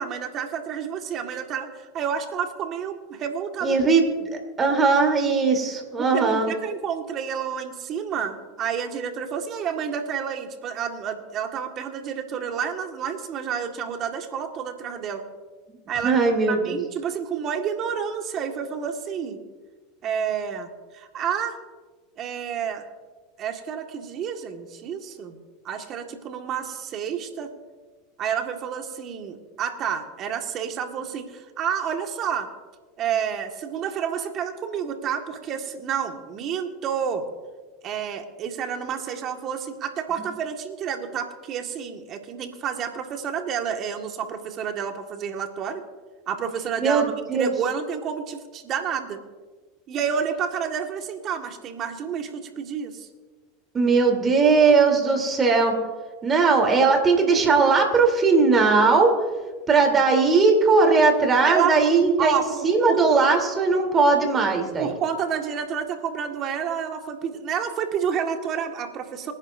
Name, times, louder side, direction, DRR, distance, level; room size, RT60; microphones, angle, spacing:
voice 1, 0.0-3.8 6.0-15.2 15.9-19.4 20.0-20.7 20.9-21.6 22.2-22.9 23.4-25.4 25.6-27.5 28.2-32.5 33.0-37.2 37.8-45.8 46.3-49.2 49.9-53.1 61.4-61.9 62.2-63.0 64.8-69.3, right 7 dB, 45° right, 4 dB, 1.9 m, -29 dB
voice 2, 3.6-4.0 4.3-6.5 16.0-16.8 46.8-47.5 53.7-55.8 56.2-59.1 59.7-64.9, right 4 dB, 25° right, 2 dB, 3.5 m, -19 dB
26.0 x 10.5 x 2.7 m, 1.3 s
hypercardioid pair, 100°, 0 cm